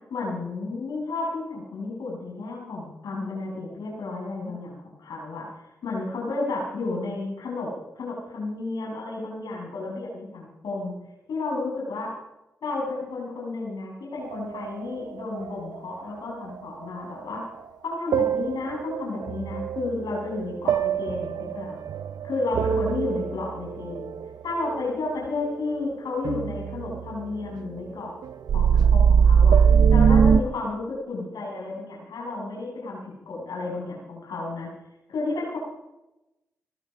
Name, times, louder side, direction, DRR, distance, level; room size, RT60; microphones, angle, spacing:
voice 1, 0.1-5.4 5.8-7.7 7.9-10.9 11.3-12.1 12.6-17.4 17.8-21.8 22.2-24.1 24.4-28.1 28.5-29.6 29.9-34.7 35.1-35.6, left 3 dB, 80° left, -2 dB, 6.7 m, -32 dB
sound 1, 14.2-15.8 16.3-16.8 17.4-17.5 18.1-25.8 26.1-27.8 28.2-30.4, right 7 dB, 80° right, 0.7 m, -22 dB
20.0 x 14.0 x 5.1 m, 0.94 s
supercardioid pair, 45°, 7 cm